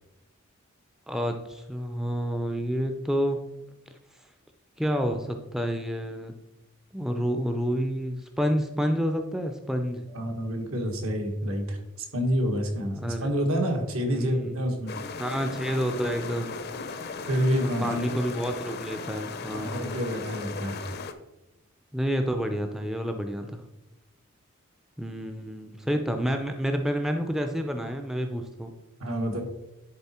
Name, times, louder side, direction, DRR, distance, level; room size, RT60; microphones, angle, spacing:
voice 1, 1.1-3.4 4.8-6.3 6.9-10.1 12.9-13.3 14.1-14.6 15.2-16.6 17.6-20.0 21.9-23.6 25.0-28.7, equal, ahead, 5 dB, 0.4 m, -29 dB
voice 2, 10.1-14.9 17.2-18.0 19.5-20.8 29.0-29.4, equal, 75° right, 3 dB, 1.6 m, -28 dB
sound 1, 14.9-21.1, left 4 dB, 45° left, 0.6 m, -37 dB
10.5 x 4.1 x 4.3 m, 0.96 s
head